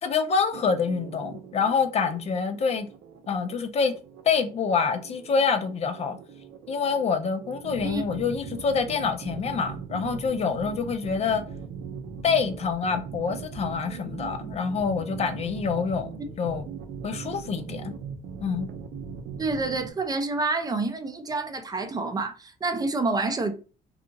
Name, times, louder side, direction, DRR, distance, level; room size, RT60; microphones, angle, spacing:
voice 1, 0.0-2.9 3.3-3.9 4.2-6.2 6.7-11.4 12.2-16.1 16.4-16.6 17.0-17.9 18.4-18.7, left 5 dB, 40° left, 0.4 m, -26 dB
sound 1, 0.5-19.9, right 6 dB, 70° right, 0.5 m, -40 dB
voice 2, 19.4-23.5, right 3 dB, 20° right, 0.4 m, -28 dB
2.8 x 2.4 x 2.5 m
cardioid pair, 110°, 17 cm